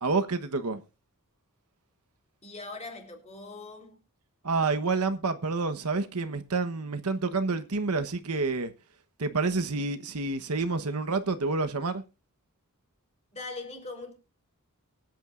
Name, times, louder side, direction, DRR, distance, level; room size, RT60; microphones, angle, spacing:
voice 1, 0.0-0.8 4.4-8.7 9.2-12.0, right 3 dB, 80° right, 1.1 m, -28 dB
voice 2, 2.4-4.0 13.3-14.1, left 3 dB, 30° left, 3.9 m, -41 dB
23.5 x 9.1 x 2.5 m
head